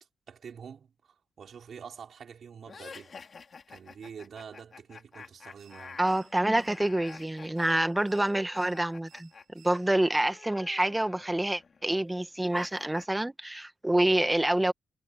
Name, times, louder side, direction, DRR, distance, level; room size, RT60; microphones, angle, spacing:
voice 1, 0.3-3.2 3.7-6.1, right 7 dB, 55° right, 4.2 m, -46 dB
sound 1, 2.7-9.4 9.7-13.1, left 5 dB, 45° left, 3.2 m, -50 dB
sound 2, 5.5-10.2, right 10 dB, 80° right, 6.6 m, -61 dB
voice 2, 6.0-14.7, right 1 dB, 10° right, 1.7 m, -27 dB
cardioid pair, 85°, 0 cm